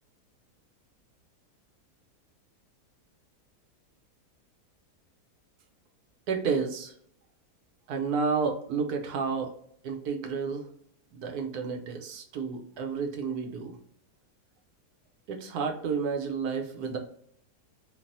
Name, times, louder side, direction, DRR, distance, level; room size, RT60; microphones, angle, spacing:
voice 1, 6.3-6.9 7.9-9.5 9.8-10.7 11.1-13.8 15.3-17.0, right 5 dB, 75° right, 4 dB, 1.1 m, -31 dB
3.3 x 2.4 x 2.5 m, 0.64 s
omnidirectional pair, 1.7 m